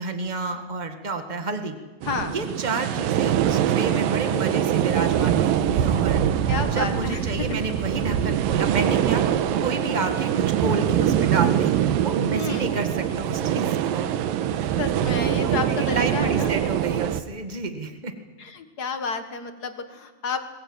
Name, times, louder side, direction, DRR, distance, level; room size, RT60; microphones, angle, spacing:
voice 1, 0.0-1.8 2.3-6.2 6.7-9.2 9.6-14.0 14.6-14.7 15.4-18.1, right 3 dB, 30° right, 7 dB, 0.7 m, -30 dB
sound 1, 2.0-17.2, right 10 dB, 85° right, 2.7 m, -23 dB
voice 2, 6.5-7.5 12.3-12.7 14.8-16.5 18.4-20.4, left 5 dB, 45° left, 8 dB, 1.3 m, -31 dB
21.0 x 20.5 x 9.0 m, 1.3 s
omnidirectional pair, 4.0 m